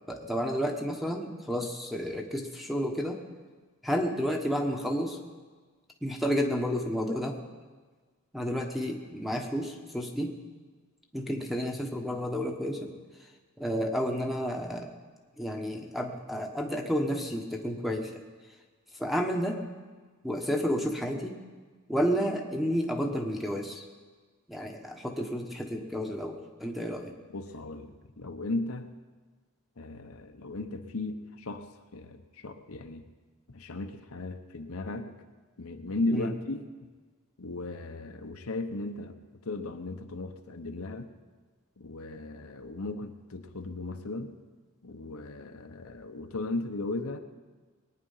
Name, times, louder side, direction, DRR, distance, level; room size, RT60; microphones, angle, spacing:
voice 1, 0.1-3.2 3.8-5.2 6.0-7.4 8.3-10.3 11.1-12.9 13.6-14.9 15.4-18.2 19.0-19.6 20.2-21.4 21.9-23.8 24.5-27.1 36.1-36.3, equal, ahead, 2 dB, 1.3 m, -31 dB
voice 2, 27.3-28.9 29.8-31.7 31.9-33.0 33.5-35.1 35.6-36.7 37.4-39.2 39.4-41.1 41.8-44.3 44.8-47.2, left 2 dB, 70° left, 5 dB, 1.0 m, -36 dB
21.0 x 9.7 x 5.7 m, 1.4 s
head